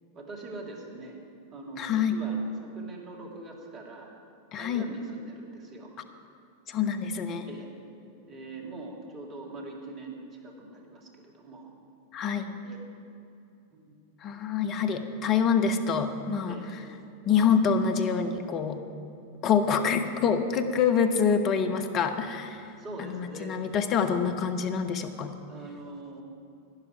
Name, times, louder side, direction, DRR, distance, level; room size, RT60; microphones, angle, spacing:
voice 1, 0.1-1.2 1.5-4.1 4.6-5.9 7.4-7.7 8.3-11.7 12.6-12.9 13.7-13.9 16.5-16.6 22.8-23.5 25.5-26.2, right 2 dB, 30° right, 1 dB, 2.0 m, -43 dB
voice 2, 1.8-2.2 4.5-4.9 6.7-7.5 12.1-12.5 14.2-16.6 17.3-18.8 19.4-22.6 23.0-25.3, left 6 dB, 35° left, 8 dB, 0.9 m, -26 dB
11.5 x 10.5 x 5.0 m, 2.6 s
figure-of-eight pair, 90°, 0 cm